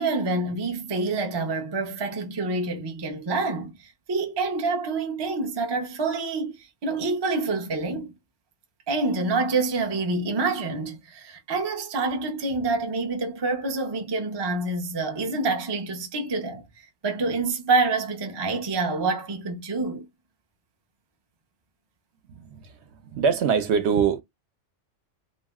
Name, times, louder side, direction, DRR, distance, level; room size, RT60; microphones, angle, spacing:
voice 1, 0.0-8.1 8.9-16.6 17.0-20.1, right 3 dB, 35° right, 0.4 m, -27 dB
voice 2, 22.3-22.7 23.0-24.2, right 6 dB, 65° right, 0.8 m, -23 dB
2.4 x 2.1 x 3.5 m
omnidirectional pair, 1.3 m